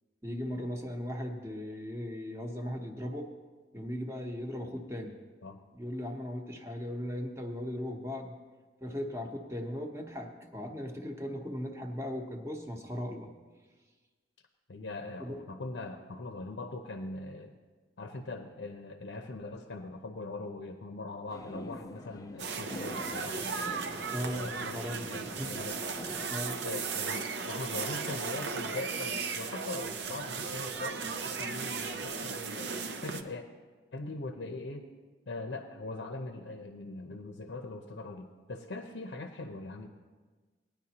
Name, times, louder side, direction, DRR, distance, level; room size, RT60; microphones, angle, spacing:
voice 1, 0.2-3.3 3.7-5.2 5.7-8.3 8.8-13.3 15.2-15.4 24.1-25.6 26.3-26.6, equal, 15° right, 2 dB, 0.9 m, -38 dB
voice 2, 14.7-17.6 18.0-23.9 24.3-24.8 25.0-25.8 26.6-33.5 33.9-34.9 35.3-39.9, left 2 dB, 85° left, 5 dB, 0.7 m, -41 dB
sound 1, 21.3-26.3, left 1 dB, 20° left, 0.4 m, -46 dB
sound 2, 22.4-33.2, right 5 dB, 70° right, 0.6 m, -36 dB
18.0 x 10.0 x 2.9 m, 1.4 s
head